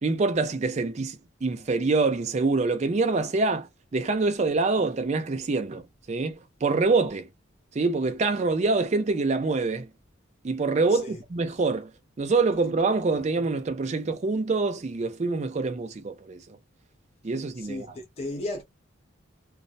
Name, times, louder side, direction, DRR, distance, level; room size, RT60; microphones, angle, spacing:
voice 1, 0.0-7.3 7.7-9.9 10.4-11.9 12.2-16.6 17.2-17.9, right 3 dB, 35° right, 0.4 m, -25 dB
voice 2, 10.9-11.2 17.5-18.6, left 2 dB, 30° left, 0.4 m, -35 dB
2.3 x 2.0 x 2.6 m
head